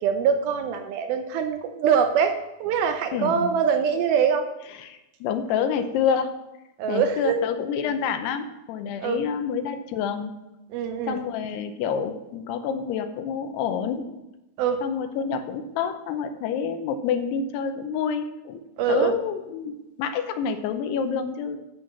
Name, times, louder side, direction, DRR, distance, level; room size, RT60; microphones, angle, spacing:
voice 1, 0.0-2.3 2.6-4.5 6.8-7.4 9.0-9.2 10.7-11.2 14.6-14.8 18.8-19.1, right 7 dB, 80° right, 6 dB, 2.3 m, -23 dB
voice 2, 3.1-3.5 4.8-6.3 6.9-10.3 11.0-14.1 14.8-18.6 18.9-21.6, left 7 dB, 85° left, 8 dB, 2.8 m, -28 dB
10.0 x 6.5 x 6.0 m, 0.95 s
omnidirectional pair, 4.7 m